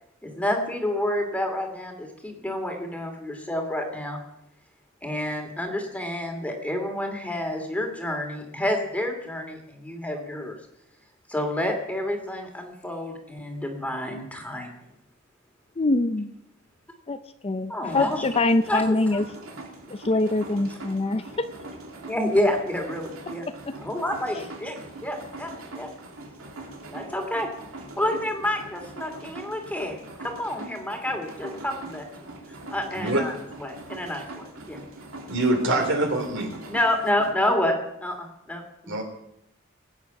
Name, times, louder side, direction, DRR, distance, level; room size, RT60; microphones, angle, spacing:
voice 1, 0.2-4.2 5.0-10.5 11.3-14.7 17.7-18.2 18.7-19.2 22.1-23.5 23.7-24.8 25.0-25.9 26.8-27.5 28.0-32.3 32.7-33.3 33.6-34.8 36.7-38.9, left 1 dB, 5° left, 3 dB, 2.5 m, -29 dB
voice 2, 15.8-16.3 17.1-17.2 17.4-19.2 19.9-21.5 23.7-23.8, left 2 dB, 30° left, 10 dB, 0.5 m, -24 dB
sound 1, 17.9-37.3, right 2 dB, 80° right, 2.7 m, -42 dB
voice 3, 35.3-36.5 38.9-39.0, right 2 dB, 60° right, 3 dB, 3.4 m, -24 dB
21.0 x 9.0 x 6.0 m, 0.80 s
head